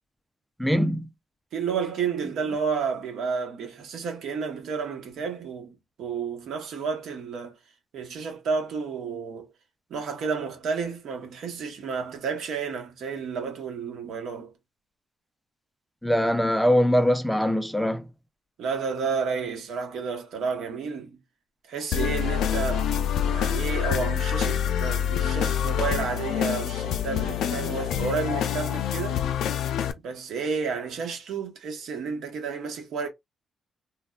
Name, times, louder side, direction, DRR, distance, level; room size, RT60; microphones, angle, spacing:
voice 1, 0.6-1.1 16.0-18.0, equal, ahead, 0.4 m, -22 dB
voice 2, 1.5-5.7 6.0-7.5 7.9-9.5 9.9-14.5 18.6-21.2 21.7-22.9 23.2-29.2 30.0-33.1, right 5 dB, 80° right, 1.0 m, -31 dB
sound 1, 21.9-29.9, left 9 dB, 85° left, 0.4 m, -26 dB
3.2 x 2.2 x 2.3 m
cardioid pair, 110°, 0 cm